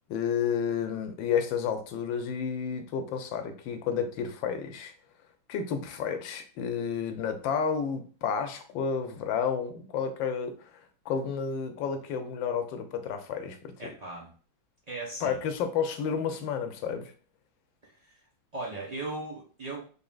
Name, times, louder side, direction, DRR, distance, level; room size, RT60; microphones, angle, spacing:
voice 1, 0.1-4.9 5.5-10.7 11.1-13.9 15.2-17.1, left 7 dB, 80° left, 7 dB, 1.3 m, -31 dB
voice 2, 13.8-14.3 14.9-15.4 17.8-18.2 18.5-19.8, right 2 dB, 70° right, -4 dB, 0.3 m, -38 dB
3.8 x 3.6 x 2.3 m, 0.39 s
omnidirectional pair, 2.2 m